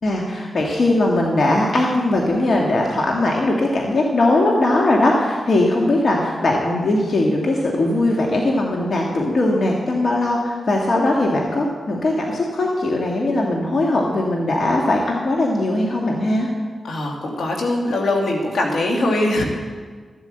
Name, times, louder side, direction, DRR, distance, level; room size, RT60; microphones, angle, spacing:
voice 1, 0.0-16.5, left 2 dB, 60° left, -1 dB, 1.7 m, -19 dB
voice 2, 16.8-19.4, left 1 dB, 75° left, 0 dB, 2.3 m, -21 dB
13.5 x 8.1 x 7.7 m, 1.5 s
cardioid pair, 55°, 0 cm